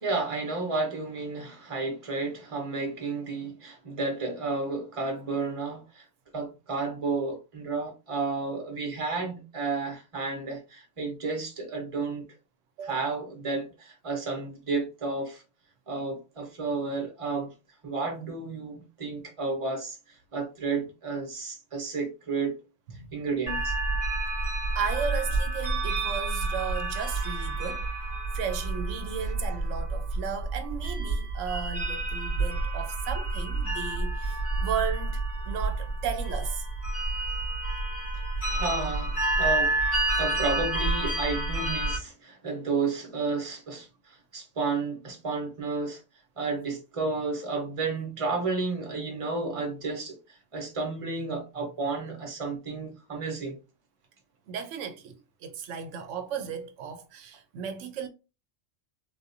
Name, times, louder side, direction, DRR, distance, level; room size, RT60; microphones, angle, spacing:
voice 1, 0.0-6.0 6.3-12.2 12.8-15.4 15.9-17.5 17.8-20.0 20.3-22.5 23.1-23.8 38.5-39.8 40.2-46.0 46.4-50.2 50.5-53.6, right 3 dB, 30° right, 1.0 m, -32 dB
voice 2, 12.8-13.1 22.9-23.1 24.7-27.9 28.3-36.7 54.5-55.1 55.4-58.1, right 7 dB, 80° right, 0.9 m, -35 dB
sound 1, 23.5-42.0, right 2 dB, 50° left, 2.0 m, -29 dB
3.5 x 2.7 x 2.6 m
omnidirectional pair, 1.3 m